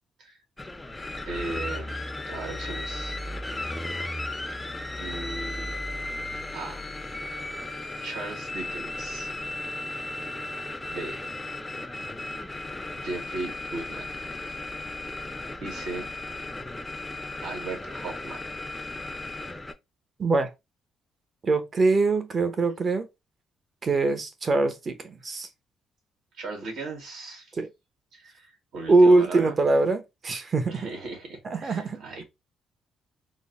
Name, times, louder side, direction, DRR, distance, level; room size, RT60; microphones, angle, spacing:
sound 1, 0.6-19.7, left 2 dB, 15° left, 0.5 m, -35 dB
voice 1, 1.2-2.0 2.3-3.2 5.0-5.7 6.5-6.8 8.0-9.3 10.9-11.3 13.0-14.1 15.6-16.1 17.4-18.4 18.7-18.9 26.4-27.5 28.1-29.6 30.7-32.2, right 3 dB, 80° right, 1.8 m, -37 dB
voice 2, 20.2-20.5 21.4-23.1 23.8-25.5 27.6-27.7 28.9-30.9 31.4-32.0, right 3 dB, 40° right, 0.8 m, -22 dB
3.8 x 2.1 x 3.6 m
cardioid pair, 90°, 0 cm